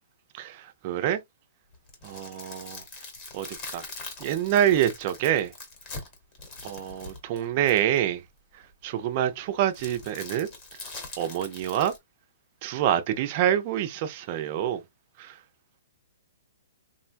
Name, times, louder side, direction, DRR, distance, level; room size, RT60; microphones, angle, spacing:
voice 1, 0.3-1.2 2.0-2.8 3.3-3.9 4.2-5.5 6.6-8.2 8.8-10.5 11.2-11.9 12.6-14.8 15.2-15.4, right 11 dB, 25° right, 0.4 m, -26 dB
sound 1, 1.7-8.0 9.7-12.0, left 3 dB, 20° left, 0.9 m, -42 dB
3.6 x 2.2 x 2.5 m
hypercardioid pair, 175°, 0 cm